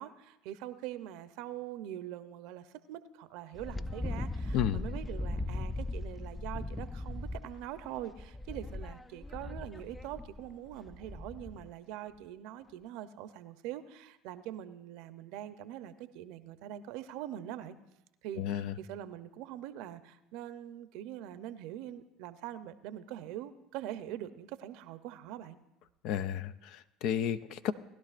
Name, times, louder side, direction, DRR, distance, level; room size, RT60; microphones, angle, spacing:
voice 1, 0.0-17.8 18.2-25.6, right 12 dB, 70° right, 12 dB, 0.6 m, -43 dB
Wind, 3.5-11.7, left 2 dB, 15° left, 0.4 m, -39 dB
voice 2, 18.4-18.7 26.0-27.7, left 9 dB, 65° left, 13 dB, 0.5 m, -32 dB
19.5 x 11.5 x 2.5 m, 0.92 s
hypercardioid pair, 80°, 0 cm